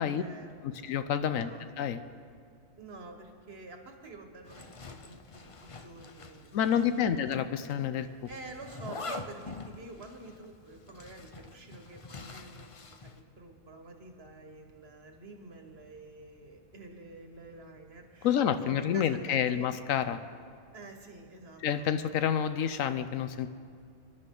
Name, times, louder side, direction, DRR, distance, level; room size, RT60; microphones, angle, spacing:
voice 1, 0.0-0.8 1.3-1.6 2.8-7.2 8.0-19.7 20.7-21.9, right 2 dB, 50° right, 4 dB, 1.6 m, -49 dB
voice 2, 0.6-1.5 1.8-2.0 6.5-8.1 18.2-20.2 21.6-23.5, left 8 dB, 80° left, 11 dB, 1.1 m, -28 dB
Zipper (clothing), 4.5-7.0 7.3-7.4 8.3-13.2, left 3 dB, 40° left, 0.5 m, -45 dB
25.5 x 11.0 x 3.8 m, 2.3 s
omnidirectional pair, 1.4 m